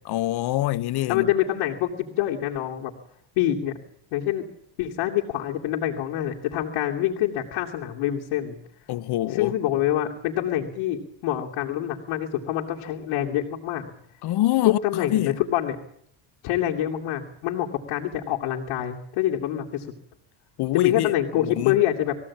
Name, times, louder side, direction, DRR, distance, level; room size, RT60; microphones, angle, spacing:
voice 1, 0.0-1.3 8.9-9.5 14.2-15.4 20.6-21.8, left 15 dB, 55° left, 0.9 m, -25 dB
voice 2, 1.1-2.9 3.4-3.8 4.1-4.5 4.8-8.6 9.3-13.9 14.6-15.8 16.4-19.9 20.7-22.2, left 12 dB, 80° left, 2.8 m, -26 dB
21.5 x 16.0 x 8.6 m
cardioid pair, 135°, 48 cm